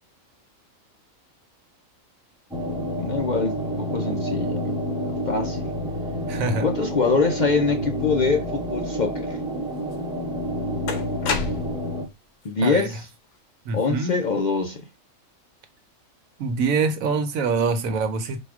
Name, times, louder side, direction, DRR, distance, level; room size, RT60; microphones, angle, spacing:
sound 1, 2.5-12.1, equal, 5° right, 0.6 m, -29 dB
voice 1, 3.0-4.7 5.0-5.7 6.6-9.4 12.4-13.1 13.7-14.8, left 4 dB, 45° left, 0.6 m, -24 dB
voice 2, 6.3-6.7 12.6-12.9 13.7-14.2 16.4-18.4, right 4 dB, 80° right, 1.2 m, -24 dB
sound 2, 9.9-10.0 10.9-12.0, left 5 dB, 75° left, 1.2 m, -28 dB
4.2 x 2.3 x 4.7 m
omnidirectional pair, 1.4 m